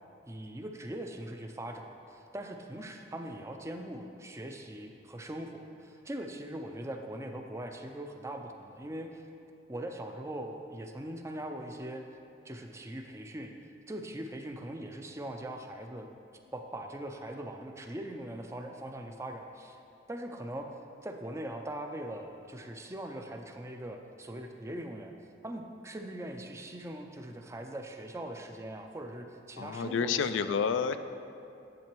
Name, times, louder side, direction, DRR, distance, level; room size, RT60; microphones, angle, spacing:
voice 1, 0.3-9.3 9.7-12.0 12.4-13.5 13.9-16.1 16.5-19.8 20.1-20.7 21.0-25.1 25.4-30.6, right 1 dB, 15° right, 4 dB, 0.4 m, -41 dB
voice 2, 29.6-31.0, left 6 dB, 85° left, 11 dB, 0.4 m, -29 dB
10.5 x 7.5 x 3.0 m, 2.6 s
head